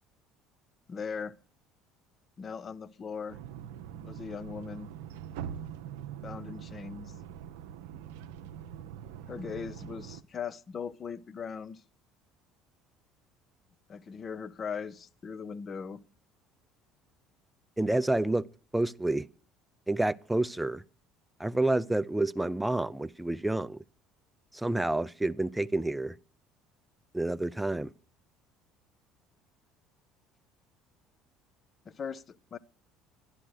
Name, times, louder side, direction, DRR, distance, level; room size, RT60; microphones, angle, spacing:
voice 1, 0.9-1.3 2.4-3.4 4.0-4.9 6.2-7.1 9.3-11.8 13.9-16.0 31.9-32.6, left 6 dB, 40° left, 0.8 m, -39 dB
sound 1, 3.3-10.2, right 9 dB, 75° right, 0.6 m, -43 dB
voice 2, 17.8-18.5 18.7-19.3 19.9-20.8 21.4-23.8 24.5-26.2 27.1-27.9, right 2 dB, 5° right, 0.6 m, -29 dB
11.5 x 11.0 x 6.4 m
hypercardioid pair, 65°, 0 cm